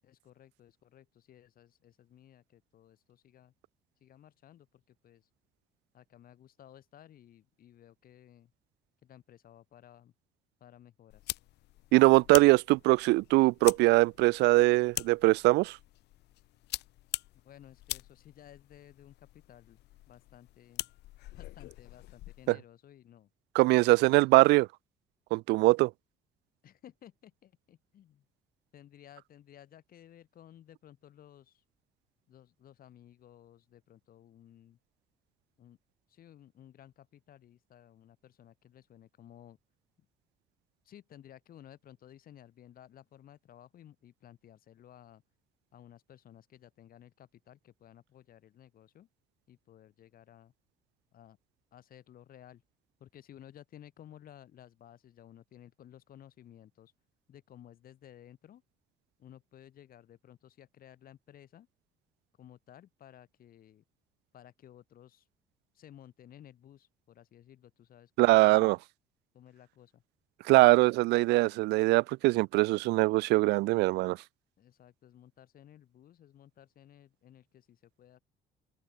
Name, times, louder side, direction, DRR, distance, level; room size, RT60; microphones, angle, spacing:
voice 1, 0.0-3.5 4.0-5.3 5.9-8.5 9.0-10.1 10.6-11.3 17.4-19.8 20.1-20.9 21.4-23.3 23.8-24.2 26.6-28.2 28.7-31.6 32.3-34.8 35.6-35.8 36.1-39.6 40.8-45.2 45.7-49.1 49.5-50.5 51.1-51.4 51.7-52.6 53.0-56.9 57.3-58.6 59.2-61.7 62.4-63.8 64.3-65.3 65.7-68.7 69.3-70.0 74.6-78.2, left 11 dB, 60° left, 7.9 m, -56 dB
sound 1, 11.1-22.5, left 17 dB, 80° left, 4.3 m, -43 dB
voice 2, 11.9-15.8 22.5-22.6 23.6-24.7 25.3-25.9 68.2-68.8 70.5-74.2, right 22 dB, 85° right, 0.5 m, -22 dB
cardioid pair, 110°, 17 cm